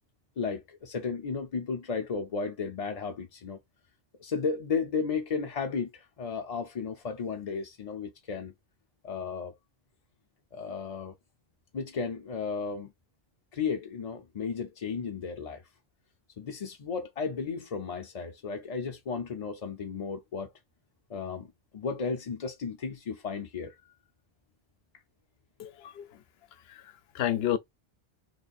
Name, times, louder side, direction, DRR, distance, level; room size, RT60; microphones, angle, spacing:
voice 1, 0.4-3.6 4.2-8.5 9.0-9.5 10.5-11.2 11.7-12.9 13.5-15.6 16.4-20.5 21.1-23.7, left 5 dB, 45° left, 0.5 m, -34 dB
voice 2, 25.6-26.2 26.5-27.6, left 11 dB, 75° left, 0.8 m, -32 dB
3.0 x 2.6 x 4.0 m
omnidirectional pair, 1.1 m